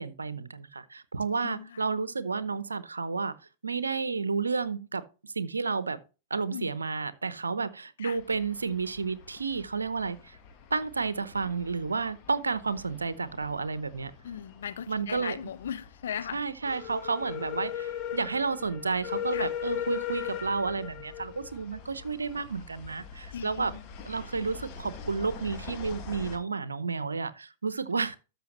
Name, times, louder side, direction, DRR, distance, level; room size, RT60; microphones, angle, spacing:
voice 1, 0.0-3.3 3.6-6.0 6.3-10.4 10.7-14.1 14.9-15.4 16.3-23.7 24.0-28.2, right 4 dB, 80° right, 0.8 m, -31 dB
voice 2, 1.4-1.8 6.5-6.7 8.0-8.2 14.2-16.4 19.3-19.5 23.3-23.9, left 8 dB, 65° left, 0.8 m, -38 dB
sound 1, 8.2-26.4, left 9 dB, 35° left, 1.7 m, -40 dB
13.0 x 5.6 x 3.0 m
figure-of-eight pair, 100°, 0 cm